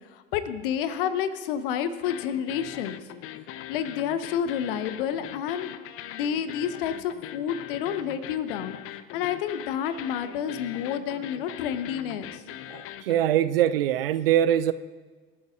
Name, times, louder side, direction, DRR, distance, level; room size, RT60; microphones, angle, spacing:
voice 1, 0.3-3.0 3.7-5.7 6.1-8.8 9.1-12.4, left 8 dB, 65° left, 11 dB, 1.0 m, -29 dB
sound 1, 2.0-13.2, left 12 dB, 50° left, 0.7 m, -41 dB
voice 2, 12.7-14.7, right 11 dB, 70° right, 15 dB, 0.6 m, -23 dB
26.5 x 11.5 x 2.5 m, 1.4 s
figure-of-eight pair, 60°, 30 cm